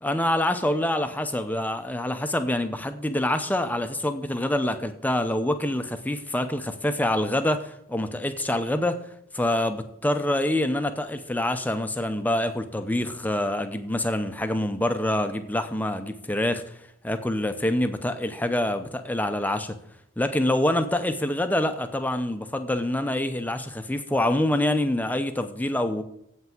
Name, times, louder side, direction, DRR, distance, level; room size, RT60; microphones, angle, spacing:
voice 1, 0.0-9.0 9.3-16.6 17.0-19.8 20.2-26.0, left 1 dB, 10° left, 8 dB, 0.6 m, -26 dB
8.2 x 5.7 x 7.7 m, 0.74 s
head